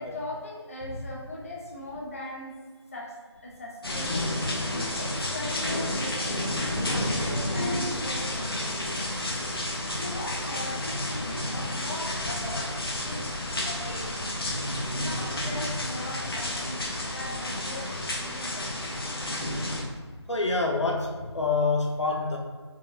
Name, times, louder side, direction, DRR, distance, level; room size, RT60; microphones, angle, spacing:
voice 1, 0.0-2.5 2.9-4.2 4.9-9.0 9.9-13.3 13.6-14.3 15.0-18.9, left 1 dB, 30° left, -3 dB, 0.6 m, -39 dB
sound 1, 3.8-19.8, left 1 dB, 55° left, 1.0 m, -31 dB
voice 2, 20.3-22.4, left 3 dB, 80° left, 1 dB, 0.9 m, -26 dB
4.7 x 4.4 x 2.6 m, 1.5 s
figure-of-eight pair, 165°, 15 cm